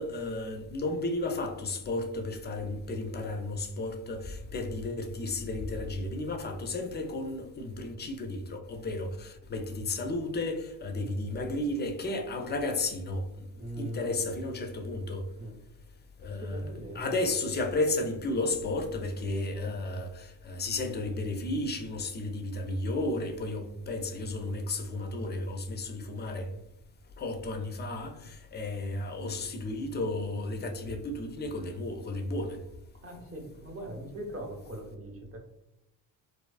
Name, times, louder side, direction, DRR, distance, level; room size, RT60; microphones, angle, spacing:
voice 1, 0.0-13.5 13.8-15.3 16.2-16.6 16.9-26.5 27.2-32.6, left 2 dB, 25° left, 0.3 m, -33 dB
voice 2, 13.6-14.1 15.4-15.6 16.3-17.3 26.1-26.3 33.0-35.4, right 1 dB, 30° right, 0.8 m, -41 dB
2.4 x 2.2 x 2.3 m
supercardioid pair, 70°, 47 cm